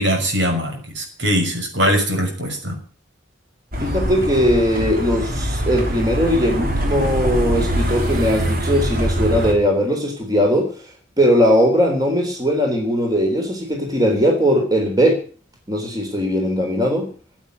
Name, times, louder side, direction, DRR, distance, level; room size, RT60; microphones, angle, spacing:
voice 1, 0.0-2.8, equal, 65° right, 4 dB, 6.0 m, -21 dB
sound 1, 3.7-9.5, equal, 45° right, 3.1 m, -23 dB
voice 2, 3.8-10.7 11.2-15.2 15.7-17.1, equal, 20° right, 3 dB, 3.6 m, -19 dB
16.0 x 8.5 x 9.4 m, 0.41 s
head